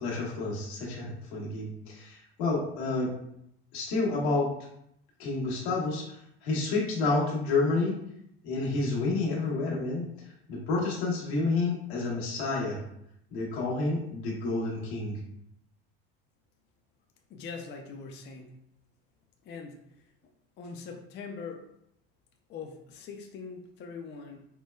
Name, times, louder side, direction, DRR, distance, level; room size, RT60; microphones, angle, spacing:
voice 1, 0.0-3.1 3.7-4.5 5.2-8.0 8.4-12.8 13.3-15.2, left 3 dB, 90° left, -4 dB, 1.1 m, -29 dB
voice 2, 17.3-18.5 19.4-20.0 20.6-21.7 22.5-24.5, left 5 dB, 35° left, 3 dB, 0.4 m, -42 dB
4.4 x 2.2 x 2.2 m, 0.76 s
supercardioid pair, 100°, 31 cm